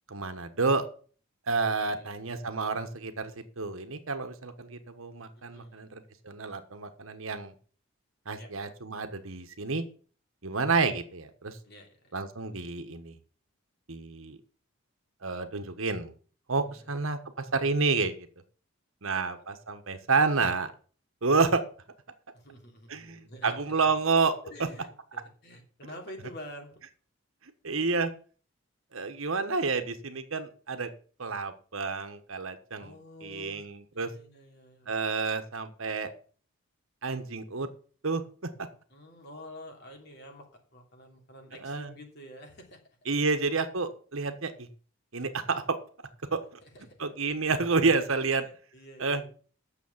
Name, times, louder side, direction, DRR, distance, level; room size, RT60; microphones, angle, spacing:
voice 1, 0.1-0.8 1.5-3.3 3.6-7.5 8.3-9.8 10.4-11.6 12.1-13.1 13.9-14.4 15.2-16.1 16.5-18.1 19.0-20.7 21.2-21.6 22.9-24.3 27.6-28.1 28.9-30.9 31.2-32.9 33.2-34.1 34.9-36.1 37.0-37.7 38.0-38.2 41.6-41.9 43.1-44.7 45.1-45.8 46.3-46.4 47.0-48.4 49.0-49.2, right 4 dB, 70° right, 8 dB, 1.3 m, -29 dB
voice 2, 1.9-2.3 5.4-5.9 8.4-8.5 11.6-12.1 16.7-16.9 19.2-19.3 22.3-23.8 24.4-26.8 32.8-33.7 33.9-35.0 38.9-40.5 40.7-42.8 46.6-47.0 48.3-49.3, equal, 50° left, 2 dB, 3.0 m, -48 dB
9.3 x 7.0 x 7.2 m, 0.42 s
head